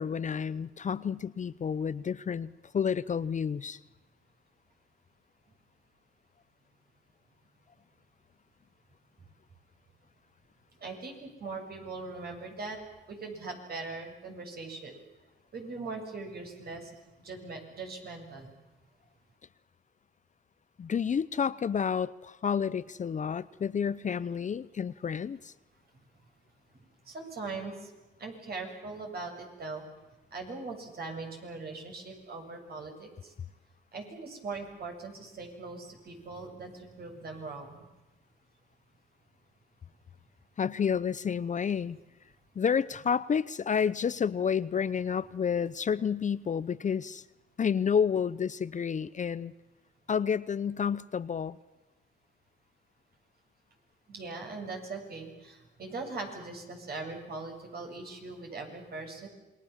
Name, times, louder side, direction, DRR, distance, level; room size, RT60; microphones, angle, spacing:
voice 1, 0.0-3.8 20.8-25.5 40.6-42.0 42.6-47.2 47.6-49.5 50.1-51.6, left 7 dB, 40° left, 16 dB, 0.8 m, -30 dB
voice 2, 10.8-12.8 13.1-15.0 15.5-18.5 27.1-27.9 28.2-29.8 30.3-33.3 33.9-37.8 54.1-59.3, right 3 dB, 50° right, 2 dB, 7.5 m, -40 dB
27.5 x 22.0 x 7.4 m, 1.1 s
cardioid pair, 90°, 20 cm